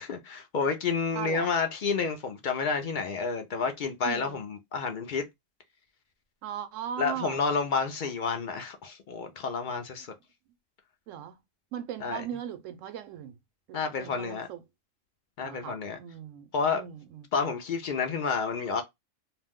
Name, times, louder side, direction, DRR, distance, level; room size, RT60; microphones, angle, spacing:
voice 1, 0.0-5.3 7.0-10.1 12.0-12.2 13.7-14.5 15.4-16.0 16.5-16.8 17.3-18.8, left 5 dB, 60° left, 0.5 m, -30 dB
voice 2, 1.1-1.5 4.0-4.4 6.4-7.4 11.1-11.4 11.7-13.4 13.7-14.6 15.4-16.5 16.7-17.3, right 10 dB, 85° right, 0.9 m, -38 dB
2.5 x 2.1 x 3.4 m
omnidirectional pair, 1.3 m